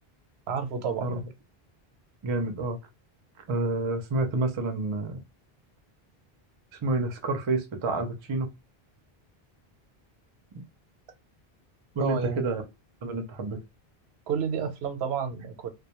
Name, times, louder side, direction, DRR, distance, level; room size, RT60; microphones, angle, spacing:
voice 1, 0.5-1.3 12.0-12.4 14.3-15.7, right 6 dB, 85° right, 0.8 m, -30 dB
voice 2, 2.2-2.8 3.5-5.2 6.8-8.5 11.9-12.6 13.0-13.6, right 2 dB, 45° right, 0.3 m, -28 dB
2.1 x 2.0 x 2.9 m
omnidirectional pair, 1.1 m